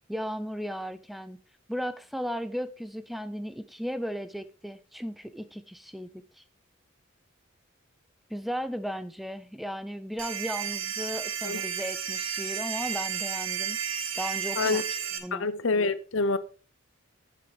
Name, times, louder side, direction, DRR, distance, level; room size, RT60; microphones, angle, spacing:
voice 1, 0.1-1.4 1.7-6.1 6.4-6.5 8.3-13.8 14.2-14.8 15.2-15.5, equal, ahead, 0.5 m, -35 dB
sound 1, 10.2-15.2, right 8 dB, 85° right, 1.5 m, -32 dB
voice 2, 15.3-16.4, left 3 dB, 70° left, 0.7 m, -26 dB
9.8 x 7.7 x 3.4 m
head